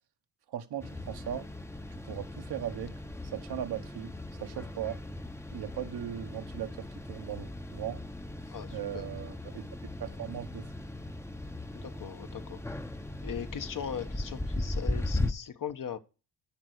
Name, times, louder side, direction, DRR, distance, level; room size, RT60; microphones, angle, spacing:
voice 1, 0.5-1.4 1.9-2.9 3.2-4.1 4.4-5.0 5.5-8.0 8.7-9.6 10.0-10.7, right 10 dB, 65° right, 1.2 m, -38 dB
sound 1, 0.8-15.3, left 1 dB, 5° left, 0.7 m, -38 dB
voice 2, 8.5-9.1 11.7-12.6 13.2-16.0, left 8 dB, 50° left, 1.0 m, -39 dB
8.7 x 5.2 x 6.4 m
cardioid pair, 70°, 42 cm